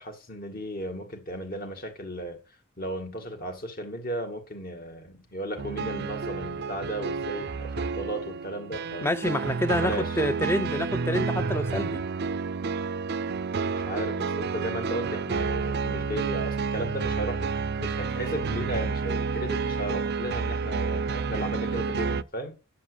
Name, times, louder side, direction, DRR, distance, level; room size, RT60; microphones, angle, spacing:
voice 1, 0.0-2.4 2.8-9.1 9.8-10.2 13.7-17.5 17.8-22.5, right 1 dB, 40° left, 2.1 m, -35 dB
sound 1, 5.6-22.2, right 4 dB, 50° right, 0.4 m, -30 dB
voice 2, 9.0-12.0, equal, 10° left, 0.6 m, -27 dB
9.7 x 7.4 x 6.9 m
head